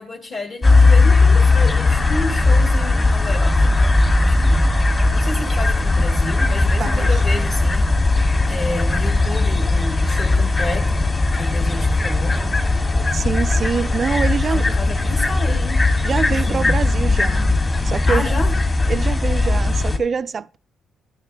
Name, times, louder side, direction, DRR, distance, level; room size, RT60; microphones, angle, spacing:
voice 1, 0.0-4.7 5.1-11.1 11.4-12.7 14.4-15.8 16.3-16.8 18.1-18.5, left 2 dB, 50° left, 1.9 m, -30 dB
sound 1, 0.6-20.0, left 2 dB, 30° left, 2.0 m, -17 dB
voice 2, 6.8-7.1 13.1-14.7 16.0-17.5 17.8-18.2 18.9-20.6, right 5 dB, 45° right, 0.3 m, -25 dB
12.5 x 8.8 x 3.3 m
cardioid pair, 90°, 0 cm